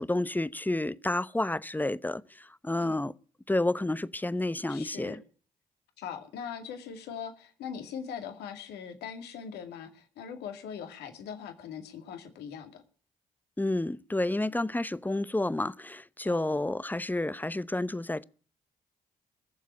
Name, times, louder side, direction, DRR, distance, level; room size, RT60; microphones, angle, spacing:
voice 1, 0.0-3.1 3.5-5.2 13.6-18.2, left 2 dB, 10° left, 0.9 m, -30 dB
voice 2, 4.7-5.2 6.0-12.8 16.3-16.6, left 7 dB, 70° left, 2.2 m, -41 dB
19.5 x 7.3 x 9.6 m
hypercardioid pair, 40°, 17 cm